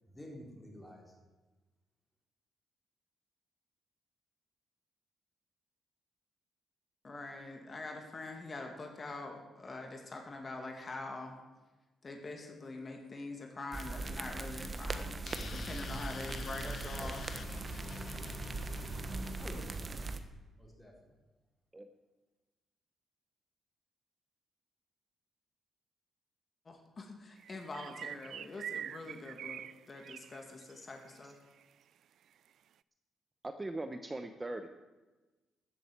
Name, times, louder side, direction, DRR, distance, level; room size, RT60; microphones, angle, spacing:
voice 1, 0.1-1.1 19.4-20.0 20.5-20.9, left 1 dB, 10° left, -1 dB, 4.4 m, -50 dB
voice 2, 7.0-11.3 12.0-15.2 15.4-17.2 26.7-31.4, left 2 dB, 35° left, 3 dB, 2.3 m, -44 dB
sound 1, 13.7-20.2, right 3 dB, 35° right, 1.2 m, -40 dB
sound 2, 15.3-20.0, left 6 dB, 50° left, 0.9 m, -47 dB
sound 3, 27.4-30.8 31.1-31.2 31.6-31.7, right 9 dB, 75° right, 0.3 m, -44 dB
voice 3, 33.4-34.7, right 2 dB, 20° right, 7 dB, 0.9 m, -40 dB
14.0 x 7.8 x 8.7 m, 1.2 s
cardioid pair, 90°, 0 cm